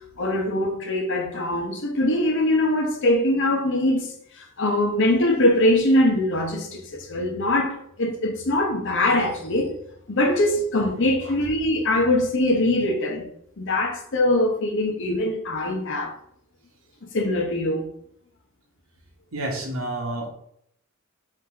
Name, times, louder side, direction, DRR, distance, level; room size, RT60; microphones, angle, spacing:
voice 1, 0.2-9.7 10.1-13.3 13.6-16.1 17.1-17.9, left 1 dB, 60° left, 0.9 m, -22 dB
voice 2, 19.3-20.3, right 1 dB, 80° right, 1.1 m, -30 dB
3.7 x 2.8 x 4.4 m
head